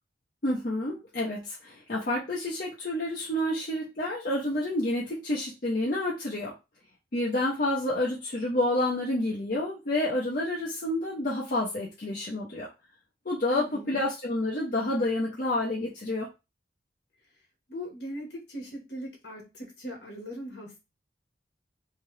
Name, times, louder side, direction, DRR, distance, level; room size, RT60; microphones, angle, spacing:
voice 1, 0.4-6.5 7.1-12.7 13.2-16.3, left 1 dB, 50° left, -5 dB, 0.9 m, -29 dB
voice 2, 13.5-14.0 17.7-20.8, equal, 65° left, 1 dB, 1.4 m, -40 dB
3.4 x 2.9 x 3.2 m, 0.26 s
head